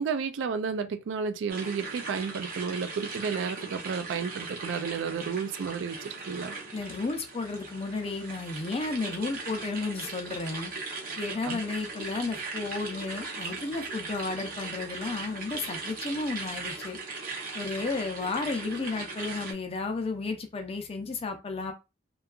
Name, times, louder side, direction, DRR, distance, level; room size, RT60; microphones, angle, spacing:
voice 1, 0.0-6.5 11.5-11.6, right 6 dB, 75° right, 0.3 m, -32 dB
sound 1, 1.5-19.5, right 3 dB, 50° right, 0.8 m, -39 dB
voice 2, 6.7-10.7 11.2-17.0 17.5-21.7, left 3 dB, 30° left, 0.5 m, -33 dB
2.7 x 2.3 x 2.3 m
head